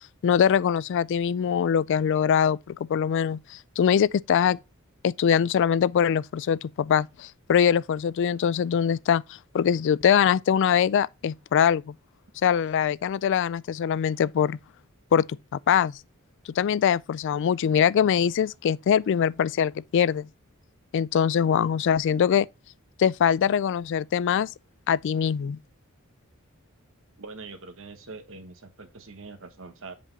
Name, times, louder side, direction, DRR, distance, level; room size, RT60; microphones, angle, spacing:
voice 1, 0.2-4.6 5.0-11.9 12.4-14.6 15.1-15.3 15.5-16.0 16.6-20.3 20.9-22.5 23.0-24.5 24.9-25.6, left 8 dB, 60° left, 0.3 m, -23 dB
voice 2, 27.2-29.9, right 3 dB, 65° right, 1.4 m, -43 dB
7.6 x 5.3 x 4.0 m
head